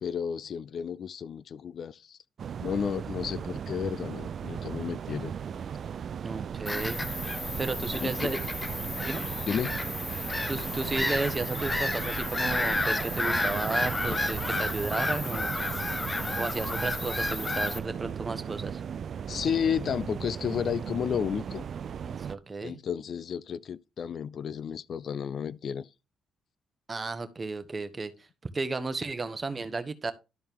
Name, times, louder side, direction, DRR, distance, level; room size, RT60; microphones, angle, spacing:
voice 1, 0.0-2.2 2.6-5.3 8.0-8.3 9.5-9.8 19.3-21.6 22.6-25.9, left 7 dB, 55° left, 0.4 m, -32 dB
sound 1, 2.4-22.4, right 7 dB, 55° right, 0.4 m, -36 dB
voice 2, 6.2-7.0 7.6-8.4 9.0-9.2 10.5-15.6 16.4-18.8 22.0-22.8 26.9-28.1 28.5-30.1, right 3 dB, 30° right, 1.1 m, -33 dB
Bird vocalization bird call bird song / Gull seagull, 6.7-17.8, left 2 dB, 20° left, 1.1 m, -31 dB
12.0 x 4.3 x 3.6 m
cardioid pair, 90°, 0 cm